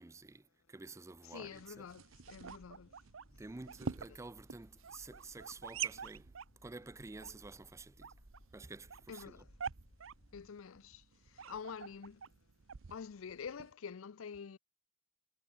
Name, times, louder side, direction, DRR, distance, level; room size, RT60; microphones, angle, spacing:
voice 1, 0.0-1.9 3.4-6.3 6.6-8.1 8.5-9.4, right 3 dB, 15° right, 0.4 m, -50 dB
voice 2, 1.2-2.9 4.1-4.2 9.1-9.5 10.3-11.0 11.3-12.2 12.9-14.6, left 6 dB, 80° left, 0.5 m, -47 dB
sound 1, 1.4-13.7, right 7 dB, 70° right, 0.7 m, -47 dB
sound 2, 2.1-10.5, equal, 30° left, 6.1 m, -63 dB
head